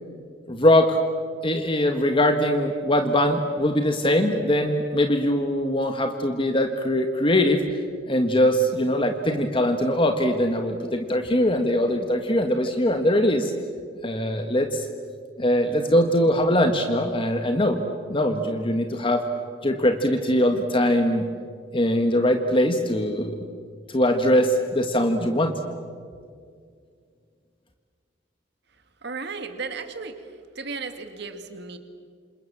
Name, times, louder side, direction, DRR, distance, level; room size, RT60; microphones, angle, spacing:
voice 1, 0.5-1.0 1.4-7.6 8.1-13.5 14.0-14.8 15.4-17.8 18.1-19.2 19.6-21.3 21.7-23.4 23.9-25.5, left 1 dB, 25° left, 5 dB, 1.6 m, -22 dB
voice 2, 29.0-30.3 30.6-31.8, right 4 dB, 60° right, 7 dB, 2.2 m, -34 dB
28.0 x 27.5 x 7.4 m, 2.1 s
head